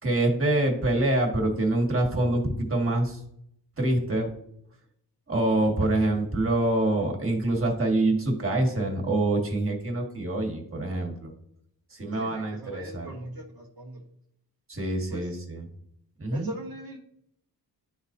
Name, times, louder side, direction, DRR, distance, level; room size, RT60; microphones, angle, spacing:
voice 1, 0.0-3.2 3.8-4.3 5.3-11.3 11.9-13.1 14.7-15.6 16.2-16.5, right 1 dB, 35° right, 0 dB, 1.9 m, -25 dB
voice 2, 12.1-14.0 15.1-15.3 16.3-17.0, right 1 dB, 65° right, -2 dB, 1.3 m, -40 dB
11.5 x 4.1 x 2.7 m, 0.74 s
wide cardioid pair, 85°, 39 cm